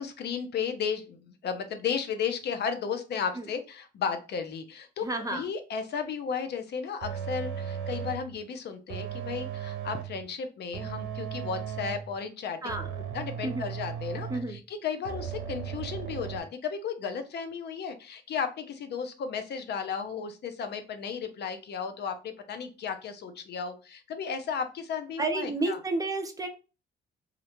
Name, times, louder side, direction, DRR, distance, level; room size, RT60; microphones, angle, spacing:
voice 1, 0.0-12.6 13.1-25.8, left 6 dB, 60° left, 8 dB, 0.5 m, -34 dB
voice 2, 5.0-5.4 12.6-12.9 13.4-13.7 14.3-14.6 25.2-26.5, right 2 dB, 15° right, 5 dB, 0.5 m, -31 dB
sound 1, 7.0-8.3 8.9-10.2 10.7-12.2 12.7-14.6 15.0-16.4, right 8 dB, 80° right, 0.6 m, -36 dB
2.4 x 2.1 x 2.8 m, 0.32 s
cardioid pair, 90°, 20 cm